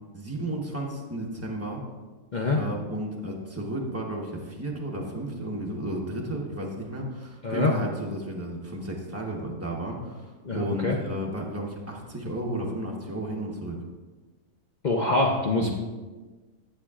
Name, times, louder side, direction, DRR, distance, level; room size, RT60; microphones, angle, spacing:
voice 1, 0.1-1.8 2.5-13.8 15.6-15.7, right 1 dB, 10° right, -2 dB, 0.9 m, -33 dB
voice 2, 10.4-11.0 14.8-15.7, left 2 dB, 75° left, -1 dB, 0.4 m, -24 dB
11.5 x 7.6 x 2.4 m, 1.3 s
omnidirectional pair, 1.8 m